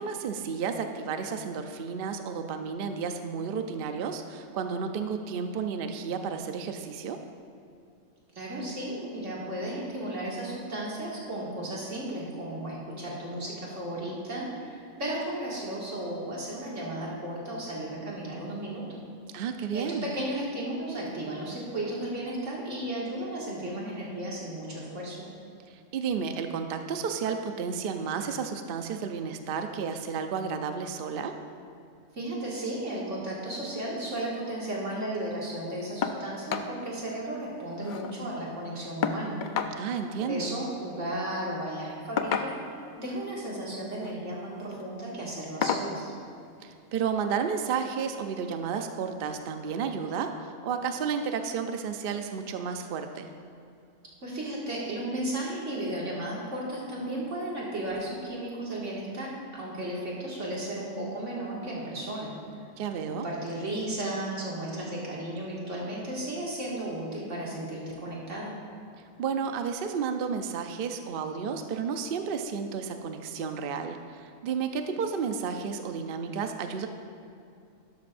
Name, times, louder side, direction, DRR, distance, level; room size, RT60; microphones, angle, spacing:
voice 1, 0.0-7.2 19.3-20.1 25.7-31.4 39.8-40.5 46.6-53.3 62.8-63.3 69.2-76.9, right 6 dB, 55° right, 6 dB, 0.7 m, -32 dB
voice 2, 8.3-19.0 19.7-25.3 32.1-39.4 40.2-46.1 54.2-62.3 63.1-68.5, right 1 dB, 70° right, -5 dB, 2.4 m, -34 dB
sound 1, 36.0-36.2 36.5-36.7 37.1-37.2 37.5-38.2 39.0-39.8 41.0-41.2 42.2-42.8 43.9-44.2 44.6-44.8 45.6-45.9 47.2-47.3 47.8-47.9, left 6 dB, 55° left, 0.6 m, -30 dB
12.0 x 11.5 x 2.6 m, 2.6 s
omnidirectional pair, 1.3 m